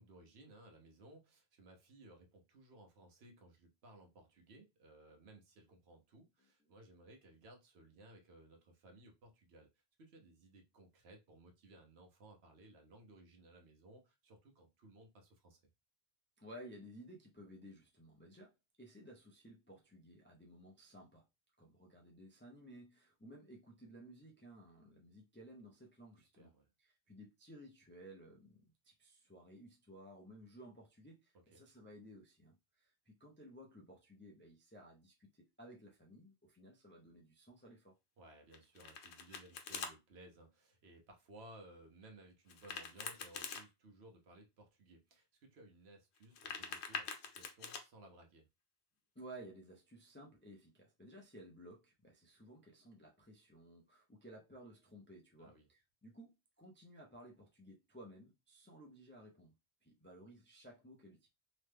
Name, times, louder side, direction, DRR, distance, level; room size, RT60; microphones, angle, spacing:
voice 1, 0.0-9.7 10.0-15.6 26.4-26.7 31.5-31.6 38.2-48.5 55.4-55.7, right 1 dB, 75° right, 1.1 m, -60 dB
voice 2, 16.4-18.5 18.8-21.2 21.6-26.5 26.8-38.0 49.1-59.5 59.8-61.3, right 1 dB, 20° left, 0.3 m, -56 dB
Domestic sounds home sounds, 38.5-39.9 42.5-43.6 46.2-47.8, left 6 dB, 90° left, 0.9 m, -45 dB
3.0 x 2.1 x 3.3 m
omnidirectional pair, 1.1 m